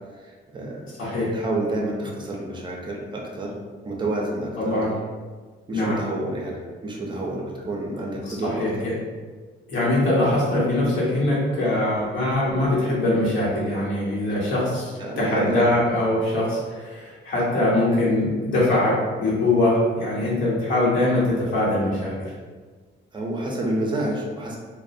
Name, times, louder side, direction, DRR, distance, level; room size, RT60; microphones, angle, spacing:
voice 1, 0.2-0.9 1.3-3.5 3.8-4.8 5.7-8.7 15.0-15.7 23.1-24.6, right 1 dB, 25° right, -1 dB, 0.4 m, -29 dB
voice 2, 1.0-1.3 4.6-4.9 5.7-6.0 8.3-8.9 9.7-22.3, left 1 dB, 90° left, -6 dB, 0.9 m, -22 dB
2.3 x 2.1 x 2.5 m, 1.5 s
cardioid pair, 140°, 19 cm